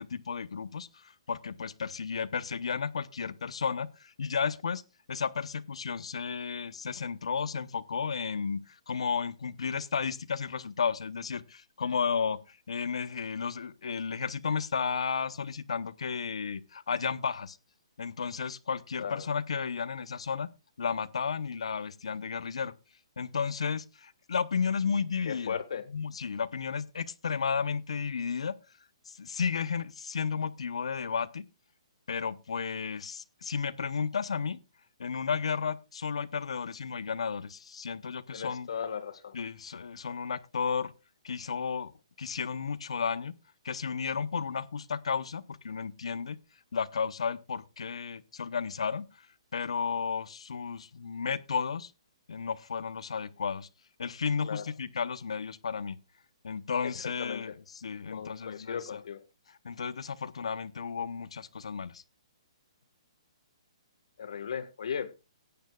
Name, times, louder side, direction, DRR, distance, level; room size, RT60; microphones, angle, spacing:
voice 1, 0.0-4.8 5.1-17.6 18.0-20.5 20.8-22.7 23.2-25.6 25.9-28.5 29.1-31.4 32.1-34.6 35.0-38.7 39.3-40.9 41.2-43.3 43.6-46.4 46.7-49.1 49.5-51.9 52.3-53.7 54.0-56.0 56.4-59.0 59.6-62.0, left 6 dB, 80° left, 0.9 m, -33 dB
voice 2, 25.3-25.8 38.3-39.3 54.4-54.6 57.2-57.5 58.1-59.2 64.2-65.1, left 7 dB, 65° left, 1.6 m, -36 dB
17.5 x 10.5 x 2.4 m
hypercardioid pair, 160°, 3 cm